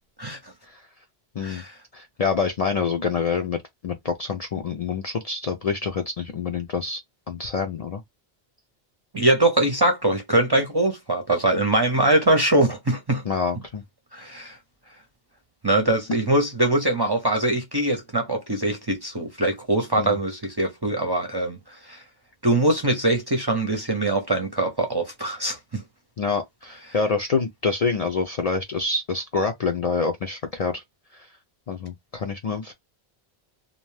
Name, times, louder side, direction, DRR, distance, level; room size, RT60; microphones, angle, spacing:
voice 1, 0.2-0.5 1.4-1.7 9.1-13.2 14.1-14.6 15.6-21.6 21.9-22.0 22.4-25.8, right 1 dB, 30° right, 0.5 m, -22 dB
voice 2, 1.9-7.0 7.3-8.0 13.2-13.8 16.1-16.2 20.0-20.2 26.2-30.8 31.1-31.3 31.7-32.7, left 5 dB, 55° left, 0.4 m, -27 dB
2.6 x 2.2 x 3.1 m
omnidirectional pair, 1.0 m